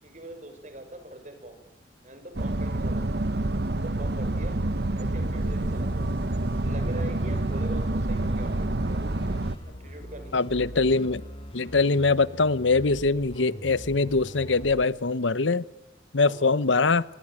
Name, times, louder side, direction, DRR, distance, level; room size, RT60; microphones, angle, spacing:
voice 1, 0.0-1.6 2.0-3.2 3.7-4.6 4.9-6.1 6.4-9.0 9.7-10.6 16.2-16.6, right 1 dB, 40° right, 6.3 m, -42 dB
sound 1, 2.4-9.6, right 2 dB, 60° right, 1.1 m, -27 dB
sound 2, 5.3-14.8, equal, 30° left, 5.2 m, -42 dB
voice 2, 10.3-11.2 11.5-15.6 16.1-17.0, left 3 dB, 85° left, 1.0 m, -23 dB
27.0 x 23.0 x 9.1 m
head